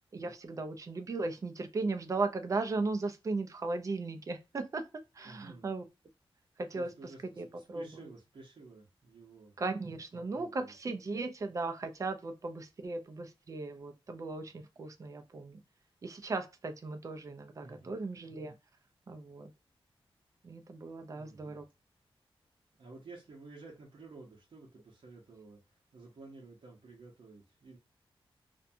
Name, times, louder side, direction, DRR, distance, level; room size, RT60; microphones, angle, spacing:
voice 1, 0.1-4.8 5.2-5.8 6.6-6.9 7.4-8.1 9.6-15.6 16.0-18.5 19.1-19.5 20.4-21.6, right 3 dB, 35° right, 0.4 m, -37 dB
voice 2, 5.2-5.7 6.7-9.5 10.2-10.7 17.6-18.0 21.1-21.6 22.8-27.8, right 3 dB, 65° right, 0.7 m, -53 dB
2.5 x 2.2 x 2.5 m
wide cardioid pair, 175°, 10 cm